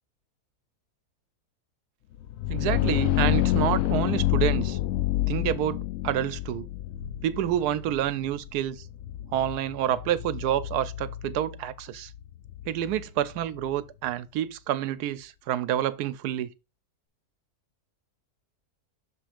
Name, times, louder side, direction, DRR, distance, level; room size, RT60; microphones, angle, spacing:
sound 1, 2.2-13.8, left 15 dB, 70° left, 0.8 m, -29 dB
voice 1, 2.5-4.8 5.3-5.8 6.0-6.7 7.2-8.8 9.3-12.1 12.7-16.5, right 11 dB, 80° right, 1.1 m, -28 dB
6.4 x 3.3 x 5.0 m
omnidirectional pair, 1.7 m